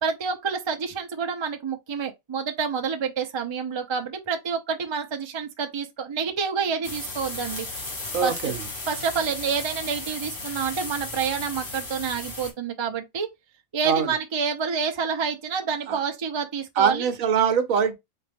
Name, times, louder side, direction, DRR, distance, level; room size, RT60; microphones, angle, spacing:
voice 1, 0.0-7.7 8.2-8.5 8.9-13.3 13.7-17.1, right 6 dB, 30° right, 0.5 m, -28 dB
sound 1, 6.8-12.5, left 2 dB, 50° left, 1.8 m, -35 dB
voice 2, 8.1-8.6 13.8-14.1 15.9-16.0 16.8-17.9, right 7 dB, 75° right, 1.2 m, -23 dB
4.3 x 3.1 x 3.4 m
omnidirectional pair, 1.5 m